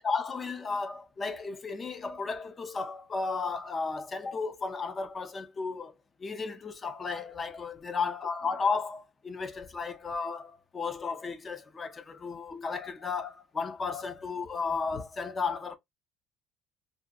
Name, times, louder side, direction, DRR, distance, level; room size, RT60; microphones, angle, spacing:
voice 1, 0.0-5.9 6.2-15.8, left 4 dB, 20° left, 0.4 m, -34 dB
2.6 x 2.2 x 2.3 m
cardioid pair, 170°, 0 cm